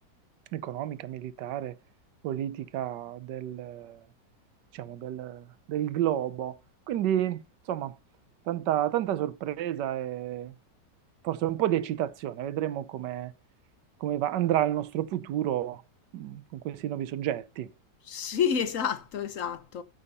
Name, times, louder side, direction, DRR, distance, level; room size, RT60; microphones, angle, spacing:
voice 1, 0.5-1.7 2.2-4.0 4.7-6.6 6.9-7.4 7.7-8.0 8.5-10.5 11.2-13.3 14.0-15.8 16.1-17.7, right 12 dB, 70° right, 1.4 m, -30 dB
voice 2, 18.1-19.8, left 7 dB, 55° left, 1.1 m, -29 dB
13.5 x 7.1 x 4.1 m
omnidirectional pair, 2.0 m